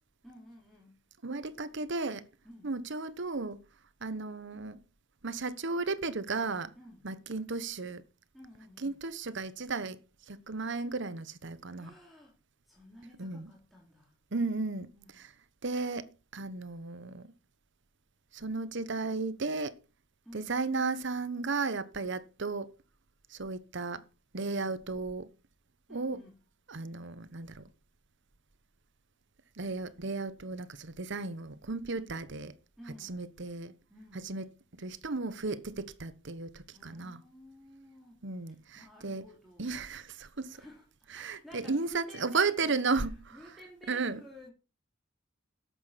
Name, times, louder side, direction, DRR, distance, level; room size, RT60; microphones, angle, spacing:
voice 1, 0.2-1.0 2.4-2.7 6.8-7.0 8.3-9.0 11.8-12.4 12.7-14.2 14.9-15.2 20.2-20.5 25.9-26.4 32.8-33.2 33.9-34.3 36.7-38.3 38.8-39.8 40.4-44.5, left 1 dB, ahead, 3.5 m, -53 dB
voice 2, 1.2-2.3 2.6-3.6 4.0-4.8 5.2-6.7 7.0-8.0 8.8-10.0 10.3-11.9 13.2-13.5 14.3-14.9 15.1-15.3 15.6-17.3 18.3-19.8 20.3-22.7 23.3-24.0 24.3-25.3 25.9-26.2 26.7-27.7 29.6-32.6 33.0-33.7 34.1-34.5 34.8-37.2 38.2-39.2 39.6-40.6 41.1-43.4 43.9-44.2, right 3 dB, 65° right, 1.1 m, -34 dB
11.5 x 8.1 x 5.8 m
head